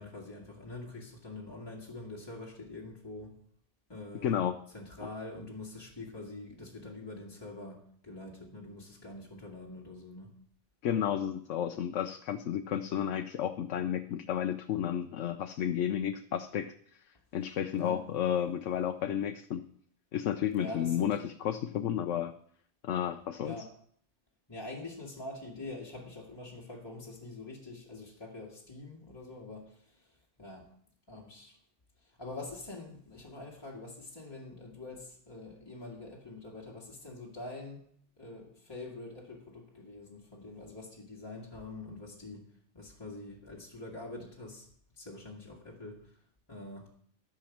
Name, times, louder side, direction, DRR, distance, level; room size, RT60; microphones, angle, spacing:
voice 1, 0.0-3.4 3.9-4.4 4.7-10.4 17.8-18.0 20.6-21.1 23.4-23.8 24.5-30.7 31.1-31.6 32.0-37.8 38.2-42.4 42.7-44.7 45.0-46.2 46.5-46.9, left 2 dB, 20° left, -4 dB, 2.0 m, -45 dB
voice 2, 4.2-4.6 10.8-16.7 17.3-19.6 20.1-22.3 22.8-23.6, left 9 dB, 85° left, 7 dB, 1.0 m, -32 dB
13.0 x 6.2 x 7.2 m, 0.62 s
omnidirectional pair, 1.2 m